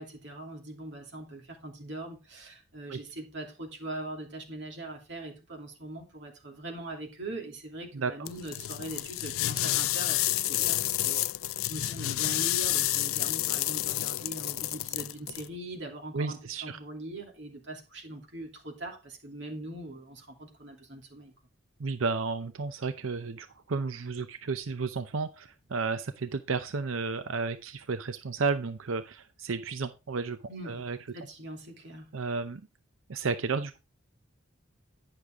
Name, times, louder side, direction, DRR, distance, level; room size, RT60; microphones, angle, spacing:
voice 1, 0.0-21.3 30.5-30.8 31.1-32.2, right 1 dB, 60° right, 2.8 m, -41 dB
sound 1, 8.3-15.5, left 16 dB, 85° left, 0.4 m, -29 dB
voice 2, 16.1-16.8 21.8-30.4 30.7-31.0 32.1-32.6 33.1-33.8, right 4 dB, 80° right, 0.6 m, -32 dB
9.9 x 6.6 x 3.6 m
head